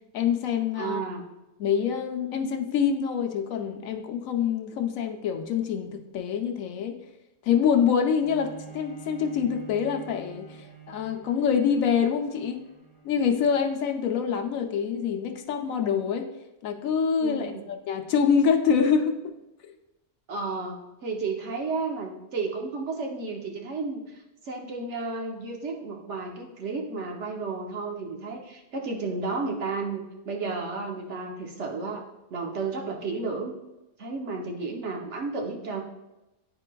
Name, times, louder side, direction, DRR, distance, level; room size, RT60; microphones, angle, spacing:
voice 1, 0.1-1.0 1.6-7.0 7.4-12.6 13.0-16.3 16.6-19.3, left 7 dB, 80° left, 5 dB, 1.0 m, -25 dB
voice 2, 0.8-1.2 17.2-17.6 20.3-24.0 24.4-32.0 32.3-33.5 34.0-35.8, right 4 dB, 60° right, 1 dB, 1.1 m, -32 dB
Bowed string instrument, 8.2-13.8 14.5-14.6, right 6 dB, 25° right, 1.1 m, -47 dB
9.6 x 4.5 x 2.2 m, 0.96 s
omnidirectional pair, 1.4 m